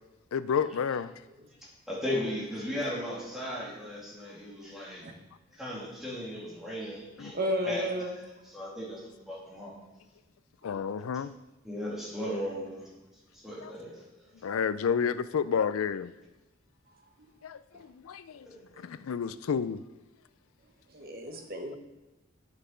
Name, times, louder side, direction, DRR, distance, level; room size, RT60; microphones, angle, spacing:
voice 1, 0.3-1.1 7.2-7.3 10.6-11.3 13.6-13.7 14.4-16.1 17.4-18.5 18.8-19.8, left 7 dB, 90° left, 0.4 m, -30 dB
voice 2, 1.9-5.0 5.5-7.9 8.5-9.7 11.6-12.9 13.4-14.0 18.4-18.6, left 1 dB, ahead, 2.3 m, -36 dB
voice 3, 7.3-8.2 10.6-10.7 17.2-17.3 20.9-21.8, equal, 45° right, 1.1 m, -33 dB
7.3 x 6.8 x 5.7 m
head